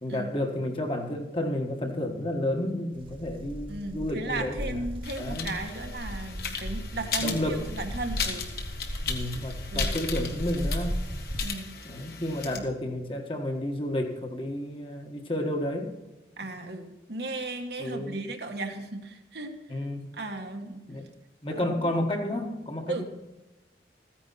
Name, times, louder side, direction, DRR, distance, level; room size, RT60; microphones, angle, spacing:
voice 1, 0.0-4.8 5.2-5.5 7.2-7.7 9.0-11.0 11.8-15.9 16.6-16.7 17.8-18.2 19.7-20.1 20.9-21.1 21.4-23.0, left 1 dB, 30° left, 3 dB, 1.5 m, -31 dB
sound 1, 2.9-11.4, equal, 30° right, 1.3 m, -36 dB
voice 2, 3.7-8.5 9.7-10.0 11.4-11.8 12.5-12.6 16.4-19.5 20.1-20.8 21.5-21.9 22.9-23.0, right 2 dB, 65° right, 4 dB, 1.6 m, -36 dB
sound 2, 5.0-12.6, left 6 dB, 55° left, 1.6 m, -36 dB
14.5 x 9.9 x 4.2 m, 1.1 s
head